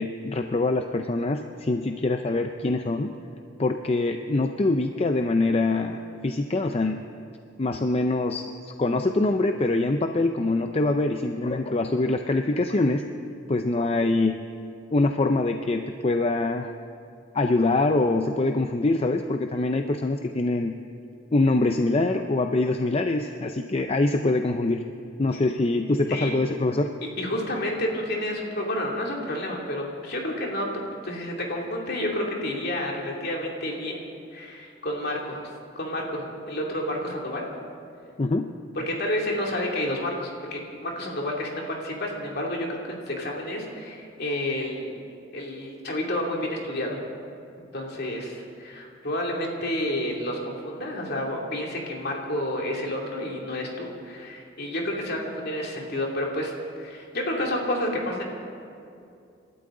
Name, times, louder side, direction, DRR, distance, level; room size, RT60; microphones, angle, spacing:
voice 1, 0.0-3.1 3.6-7.0 7.6-13.1 13.5-14.4 14.9-16.7 17.3-20.8 21.3-24.8 25.2-26.9 38.2-38.5, left 2 dB, 30° left, 6 dB, 0.5 m, -24 dB
voice 2, 27.2-30.7 31.0-34.0 34.3-35.5 35.8-37.5 38.7-42.8 43.1-44.9 45.3-47.0 47.6-58.2, left 1 dB, 55° left, -1 dB, 2.7 m, -30 dB
28.0 x 12.5 x 3.9 m, 2.5 s
head